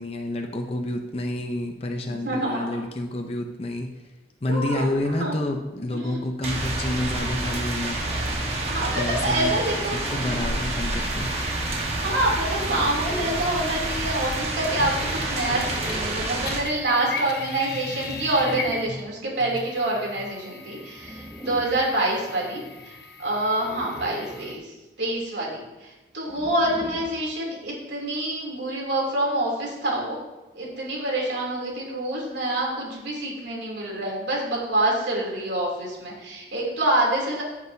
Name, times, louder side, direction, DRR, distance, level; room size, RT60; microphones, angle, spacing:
voice 1, 0.0-3.9 4.4-8.0 8.9-9.5 10.1-11.3, left 1 dB, 35° left, 3 dB, 0.6 m, -29 dB
voice 2, 2.1-2.8 4.5-5.3 5.9-6.2 8.0-8.4 8.7-10.4 12.0-30.2 30.5-37.4, right 1 dB, 90° right, -3 dB, 3.0 m, -27 dB
sound 1, 6.4-16.6, right 2 dB, 35° right, 1.3 m, -28 dB
sound 2, 9.7-10.6 12.6-13.6 15.3-16.3 18.0-19.0 20.9-21.9 23.6-24.6 26.3-27.3, equal, 10° right, 0.6 m, -40 dB
sound 3, 11.0-16.1 16.4-24.5, left 3 dB, 60° left, 1.0 m, -39 dB
15.0 x 6.1 x 2.7 m, 1.1 s
head